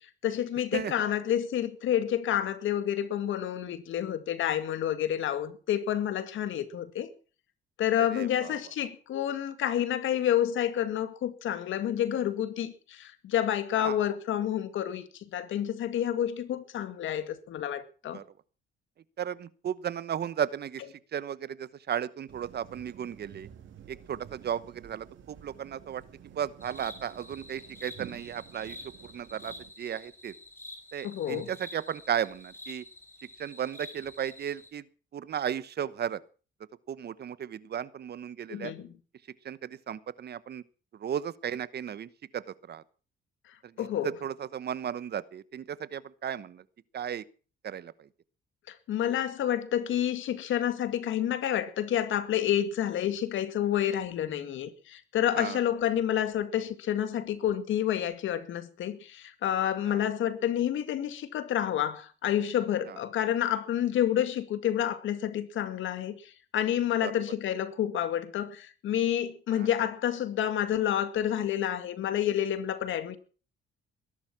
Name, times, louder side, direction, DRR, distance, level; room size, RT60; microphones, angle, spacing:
voice 1, 0.2-7.1 7.8-18.2 31.0-31.5 38.5-38.9 43.8-44.1 48.7-73.2, left 10 dB, 75° left, 2.1 m, -29 dB
voice 2, 8.0-8.6 13.7-14.0 18.1-18.2 19.2-20.9 21.1-23.5 23.9-26.0 26.3-28.8 29.0-30.3 30.9-32.8 33.4-34.8 35.1-36.2 36.9-38.7 39.4-40.6 40.9-42.8 43.6-46.6 46.9-47.2 47.6-48.1 55.4-55.6 59.9-60.1 62.9-63.0 67.0-67.1 69.5-69.7, right 9 dB, 55° right, 1.1 m, -35 dB
sound 1, 22.3-29.7, right 9 dB, 75° right, 2.7 m, -51 dB
sound 2, 26.6-34.7, left 1 dB, 10° left, 5.8 m, -48 dB
21.0 x 11.5 x 6.0 m
cardioid pair, 90°, 20 cm